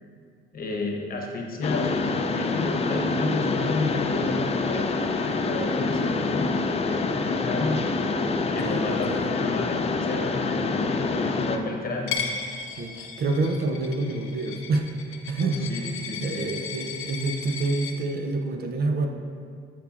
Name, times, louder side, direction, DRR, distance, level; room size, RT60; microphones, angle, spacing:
voice 1, 0.5-4.9 5.3-6.5 6.8-7.8 8.5-12.2 15.4-16.5, left 3 dB, 45° left, 1 dB, 1.0 m, -32 dB
Mechanisms, 1.6-11.6, left 3 dB, 30° left, 0.4 m, -26 dB
voice 2, 8.6-9.3 12.7-14.9 15.3-15.7 16.2-19.1, right 3 dB, 50° right, 4 dB, 0.6 m, -27 dB
Coin (dropping), 12.1-17.9, left 6 dB, 85° left, 0.7 m, -35 dB
9.1 x 4.7 x 2.5 m, 2.2 s
cardioid pair, 90°, 20 cm